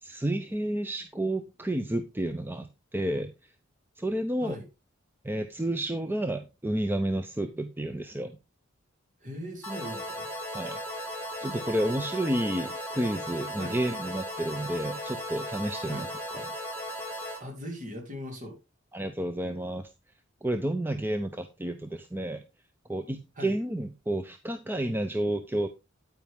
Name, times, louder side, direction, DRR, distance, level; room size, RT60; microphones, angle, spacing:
voice 1, 0.0-3.3 4.0-4.6 5.2-8.3 10.5-10.8 11.4-16.1 16.3-16.4 18.9-19.9 20.4-22.4 22.9-25.7, right 1 dB, 10° right, 8 dB, 0.6 m, -30 dB
voice 2, 9.2-10.3 13.6-13.8 15.8-16.1 17.4-18.6 23.4-23.5, equal, 40° right, 3 dB, 3.4 m, -39 dB
sound 1, 9.6-17.4, equal, 10° left, 2.9 m, -36 dB
9.3 x 9.2 x 3.6 m, 0.25 s
head